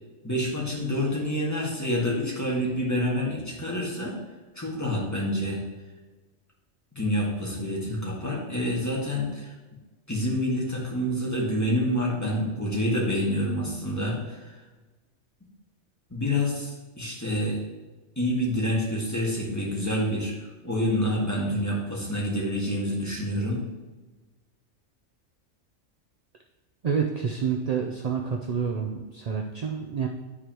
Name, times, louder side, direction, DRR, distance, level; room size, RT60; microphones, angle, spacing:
voice 1, 0.2-4.1 4.5-5.6 6.9-9.5 10.1-14.6 16.1-17.6 18.2-23.6, equal, 15° left, -4 dB, 1.5 m, -27 dB
voice 2, 26.8-30.1, right 6 dB, 60° right, 2 dB, 0.4 m, -28 dB
9.6 x 4.9 x 3.0 m, 1.2 s
omnidirectional pair, 1.3 m